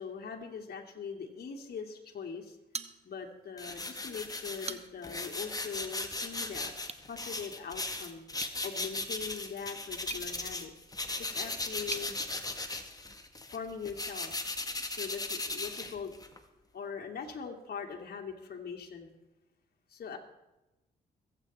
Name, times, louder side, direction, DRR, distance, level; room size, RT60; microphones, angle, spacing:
voice 1, 0.0-2.6 3.0-6.7 7.1-8.2 8.6-10.7 11.3-12.2 13.5-14.3 14.9-16.1 16.7-19.1 19.9-20.2, left 6 dB, 55° left, 1 dB, 2.3 m, -41 dB
sound 1, 2.7-3.5 3.8-3.9 4.4-5.2 6.8-7.1 8.3-12.1, right 5 dB, 35° right, 0.9 m, -45 dB
sound 2, 3.6-10.7 10.9-16.4, left 2 dB, 20° left, 1.9 m, -37 dB
22.5 x 8.6 x 4.2 m, 1.0 s
supercardioid pair, 50°, 19 cm